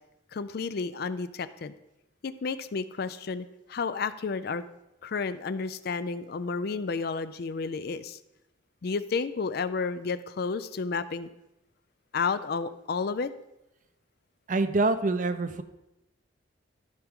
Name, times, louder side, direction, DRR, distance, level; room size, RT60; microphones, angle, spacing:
voice 1, 0.3-1.7 2.2-4.6 5.0-8.2 8.8-11.3 12.1-13.3, left 4 dB, 55° left, 13 dB, 0.4 m, -31 dB
voice 2, 14.5-15.6, right 3 dB, 45° right, 10 dB, 0.6 m, -25 dB
13.5 x 5.9 x 3.6 m, 0.93 s
head